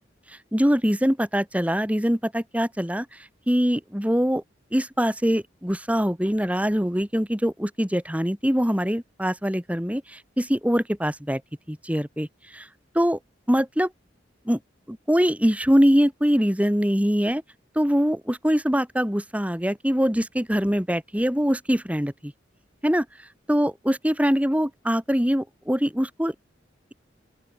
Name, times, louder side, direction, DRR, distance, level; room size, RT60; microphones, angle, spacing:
voice 1, 0.5-3.0 3.5-4.4 4.7-11.4 11.7-12.7 12.9-13.2 13.5-13.9 14.4-14.6 14.9-17.4 17.7-22.3 22.8-23.0 23.5-26.3, equal, 10° right, 3.3 m, -23 dB
open air
head